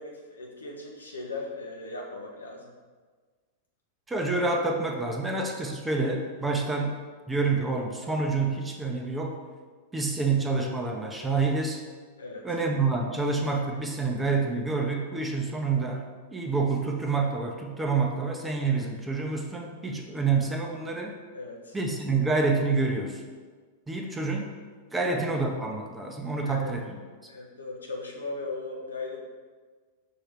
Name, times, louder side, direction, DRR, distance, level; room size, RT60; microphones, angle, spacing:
voice 1, 0.0-2.7 12.2-12.5 21.3-21.8 25.0-25.1 26.4-26.7 27.3-29.2, left 3 dB, 80° left, -1 dB, 0.6 m, -38 dB
voice 2, 4.1-7.0 7.3-9.4 9.9-11.8 12.4-21.1 21.7-23.2 23.9-24.5 24.9-27.0, right 3 dB, 10° right, 1 dB, 0.6 m, -28 dB
5.5 x 2.8 x 3.5 m, 1.5 s
figure-of-eight pair, 95°, 0 cm